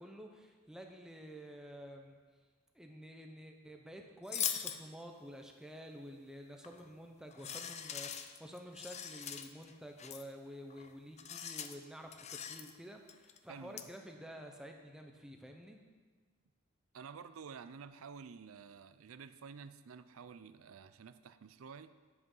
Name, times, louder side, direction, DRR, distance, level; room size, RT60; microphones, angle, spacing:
voice 1, 0.0-2.2 2.7-15.8, equal, 5° right, 3 dB, 0.8 m, -50 dB
sound 1, 4.3-4.8 6.6-6.9 7.3-9.7 10.0-10.2 10.7-10.9 11.2-11.8 12.1-12.7 13.1-13.4 13.8-13.9, left 8 dB, 30° left, 0.5 m, -41 dB
voice 2, 13.5-13.9 16.9-21.9, right 6 dB, 80° right, 12 dB, 0.5 m, -51 dB
9.9 x 8.0 x 5.5 m, 1.5 s
head